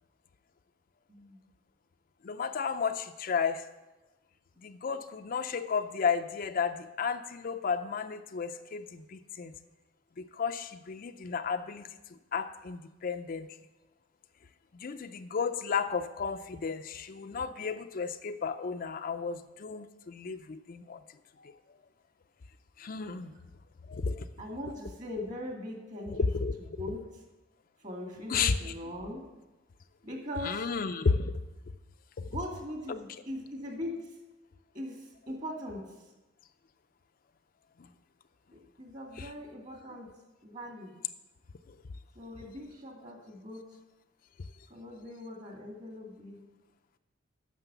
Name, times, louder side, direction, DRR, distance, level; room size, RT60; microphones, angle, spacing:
voice 1, 1.1-1.4 23.1-23.2 24.4-26.3 26.6-27.0 27.8-29.3 30.0-30.7 32.3-34.0 34.7-35.9 38.5-40.1 40.4-41.0 42.2-43.7 44.7-46.5, left 1 dB, 40° right, 1 dB, 2.2 m, -41 dB
voice 2, 2.2-3.6 4.6-9.5 10.2-11.9 12.3-13.5 14.7-21.0 21.4-21.5 22.8-23.3 23.9-24.3 26.1-26.5 28.3-28.6 30.4-31.3 32.2-32.3 32.9-33.0 39.2-39.3 41.7-41.8, left 5 dB, 45° left, 8 dB, 0.4 m, -33 dB
9.7 x 6.3 x 6.9 m, 1.0 s
head